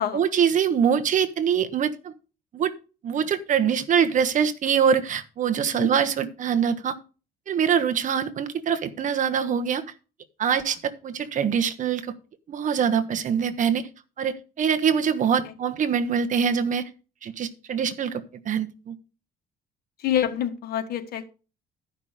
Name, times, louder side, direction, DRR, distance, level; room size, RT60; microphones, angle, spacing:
voice 1, 0.1-2.1 2.5-2.7 3.0-6.9 7.5-9.8 10.4-12.1 12.5-13.9 14.2-16.9 17.2-19.0, right 7 dB, 50° right, 9 dB, 1.2 m, -24 dB
voice 2, 20.0-21.3, left 10 dB, 65° left, 9 dB, 1.5 m, -27 dB
13.0 x 5.8 x 5.0 m, 0.35 s
cardioid pair, 110°, 17 cm